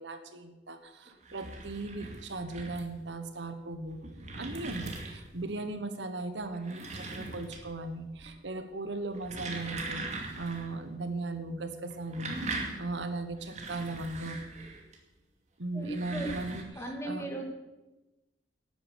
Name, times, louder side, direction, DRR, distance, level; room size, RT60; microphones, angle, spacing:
voice 1, 0.0-4.0 4.3-10.0 10.4-12.3 12.8-14.4 15.6-17.3, right 2 dB, 75° right, 8 dB, 1.3 m, -37 dB
sound 1, 1.1-3.0 3.7-5.4 6.4-7.8 8.1-8.6 9.0-10.7 11.0-11.1 11.9-15.0 15.7-16.6, right 3 dB, 40° right, 2.5 m, -40 dB
voice 2, 15.7-16.3 16.8-17.5, right 1 dB, 15° left, 1 dB, 2.5 m, -37 dB
12.0 x 9.5 x 8.3 m, 1.0 s
head